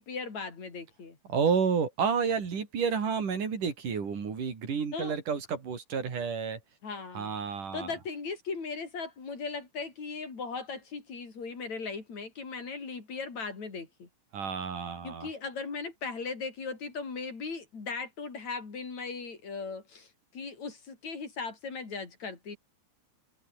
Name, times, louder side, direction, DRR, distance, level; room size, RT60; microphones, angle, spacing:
voice 1, 0.0-1.2 4.9-5.2 6.8-7.3 7.7-14.1 15.0-22.6, left 4 dB, 60° left, 6.2 m, -38 dB
voice 2, 1.3-6.6 7.1-7.9 14.3-15.3, right 6 dB, 85° right, 5.5 m, -30 dB
open air
omnidirectional pair, 3.6 m